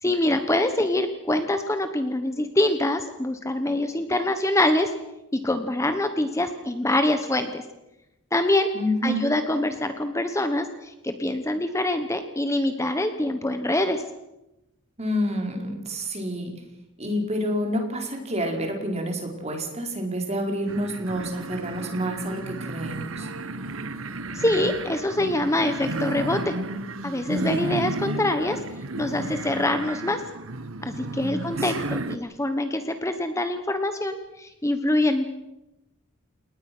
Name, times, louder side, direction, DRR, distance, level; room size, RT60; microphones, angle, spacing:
voice 1, 0.0-4.9 5.3-7.6 8.3-8.7 9.0-14.0 24.3-26.5 27.0-28.6 29.0-30.2 30.8-35.2, left 1 dB, 15° left, 8 dB, 1.2 m, -25 dB
voice 2, 8.7-9.2 15.0-16.5 17.0-23.3 31.2-31.9, equal, 30° right, 2 dB, 4.7 m, -28 dB
sound 1, 20.7-32.2, right 2 dB, 85° right, 1.3 m, -33 dB
29.5 x 19.0 x 6.2 m, 0.94 s
head